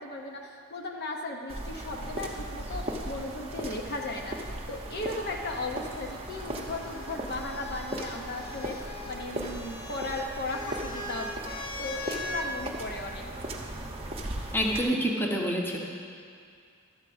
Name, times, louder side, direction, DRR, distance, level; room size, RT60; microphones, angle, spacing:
voice 1, 0.0-13.3, left 2 dB, 50° left, 1 dB, 0.8 m, -36 dB
sound 1, 1.5-14.8, right 1 dB, 25° right, 0.8 m, -38 dB
sound 2, 5.9-12.5 13.6-14.2, left 1 dB, 75° left, 1.2 m, -41 dB
voice 2, 14.5-15.8, equal, 10° left, -1 dB, 0.8 m, -27 dB
12.0 x 4.5 x 7.8 m, 2.3 s
head